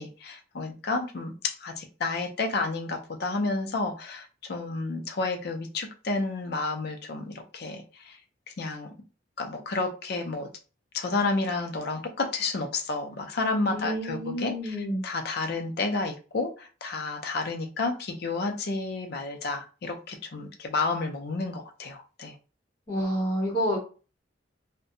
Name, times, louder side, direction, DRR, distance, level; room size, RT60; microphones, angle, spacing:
voice 1, 0.0-8.2 8.6-8.9 9.4-10.5 10.9-22.4, left 3 dB, 60° left, 3 dB, 0.5 m, -31 dB
voice 2, 13.7-15.0 22.9-23.8, equal, 30° left, -7 dB, 1.5 m, -29 dB
2.6 x 2.1 x 2.6 m, 0.35 s
head